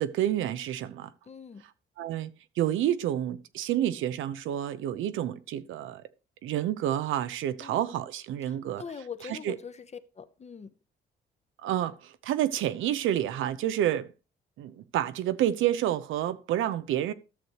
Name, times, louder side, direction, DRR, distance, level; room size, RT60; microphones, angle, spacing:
voice 1, 0.0-1.1 2.0-6.0 6.4-8.8 9.3-9.6 11.6-14.1 14.6-17.1, right 11 dB, 80° right, 0.7 m, -29 dB
voice 2, 1.3-1.6 7.6-7.8 8.4-9.9 10.1-10.7, left 6 dB, 35° left, 0.8 m, -42 dB
13.5 x 6.4 x 3.0 m
cardioid pair, 90°, 20 cm